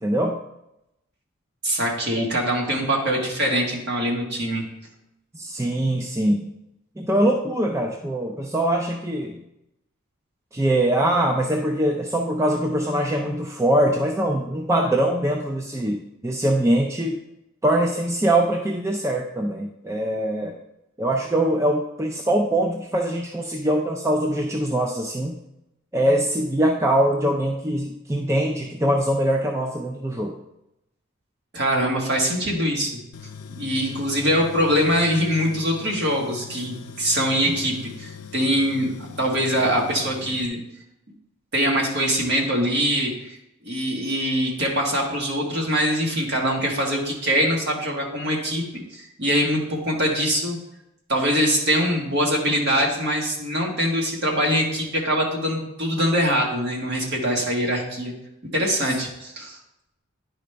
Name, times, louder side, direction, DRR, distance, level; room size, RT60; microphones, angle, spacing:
voice 1, 0.0-0.4 2.2-2.3 5.3-6.4 7.0-9.4 10.5-16.0 16.2-17.2 17.6-20.6 21.0-25.4 25.9-30.4 37.5-37.6 58.9-59.0, right 1 dB, 15° right, 2 dB, 0.4 m, -23 dB
voice 2, 1.6-4.6 31.5-33.0 33.5-40.6 41.5-43.4 43.6-48.6 48.9-50.6 51.1-58.1 58.5-59.6, equal, 50° right, -1 dB, 1.7 m, -23 dB
Tools, 33.1-40.5, left 6 dB, 85° left, 0.5 m, -41 dB
10.0 x 5.1 x 3.4 m, 0.87 s
head